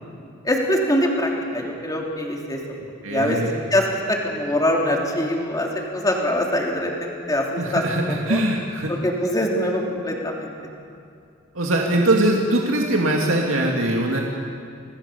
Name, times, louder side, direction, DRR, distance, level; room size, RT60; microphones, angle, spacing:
voice 1, 0.4-2.6 3.1-3.4 3.7-7.8 8.1-8.4 8.9-10.5, left 1 dB, 20° left, -1 dB, 3.2 m, -23 dB
voice 2, 3.0-3.5 7.6-8.9 11.5-14.2, right 1 dB, 85° right, -1 dB, 2.3 m, -21 dB
26.0 x 18.5 x 6.9 m, 2.4 s
head